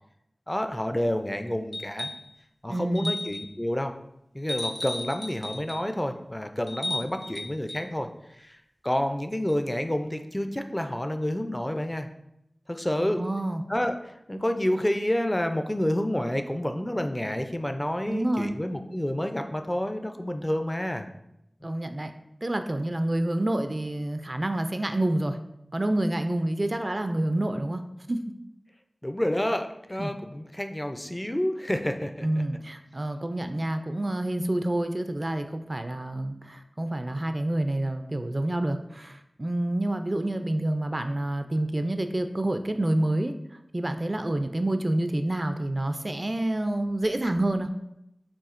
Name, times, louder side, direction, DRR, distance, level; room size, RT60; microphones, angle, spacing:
voice 1, 0.5-2.1 2.6-3.9 4.3-8.1 8.4-8.6 8.8-12.1 12.7-13.2 13.7-21.1 21.6-21.8 29.0-32.3, left 1 dB, 20° left, 7 dB, 0.4 m, -29 dB
sound 1, 1.7-2.3 2.9-3.6 4.5-5.9 6.7-7.9 9.5-9.6, left 1 dB, 55° left, 1.0 m, -35 dB
voice 2, 2.7-3.1 13.0-13.6 18.1-18.5 21.6-22.1 22.4-25.4 25.7-27.8 28.1-28.2 30.0-30.1 32.2-43.3 43.7-47.7, right 1 dB, 45° right, 7 dB, 0.4 m, -28 dB
6.9 x 2.7 x 2.5 m, 0.81 s
wide cardioid pair, 40°, 0 cm